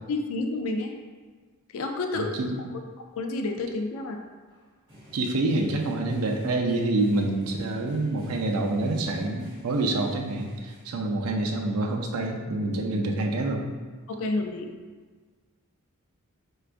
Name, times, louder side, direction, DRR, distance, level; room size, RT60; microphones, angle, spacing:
voice 1, 0.1-1.0 1.7-2.4 3.1-4.2 14.1-14.7, left 2 dB, 65° left, 4 dB, 0.3 m, -29 dB
voice 2, 2.1-2.6 5.1-13.7, right 2 dB, 80° right, 2 dB, 0.4 m, -27 dB
sound 1, 3.3-3.5 4.5-10.8, equal, 20° right, 1.1 m, -50 dB
4.5 x 2.3 x 2.4 m, 1.4 s
head